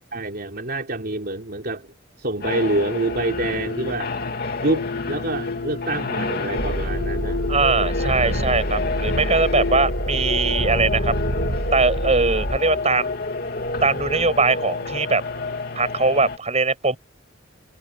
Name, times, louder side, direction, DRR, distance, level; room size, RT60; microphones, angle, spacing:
voice 1, 0.1-1.9 2.2-4.2 4.6-7.5, right 2 dB, 55° right, 3.8 m, -26 dB
sound 1, 2.4-16.4, left 3 dB, 55° left, 2.9 m, -28 dB
sound 2, 6.6-12.6, right 1 dB, 70° right, 1.9 m, -27 dB
voice 2, 7.5-11.1 11.7-13.2 13.8-15.2 15.8-17.0, right 3 dB, 35° right, 7.4 m, -21 dB
head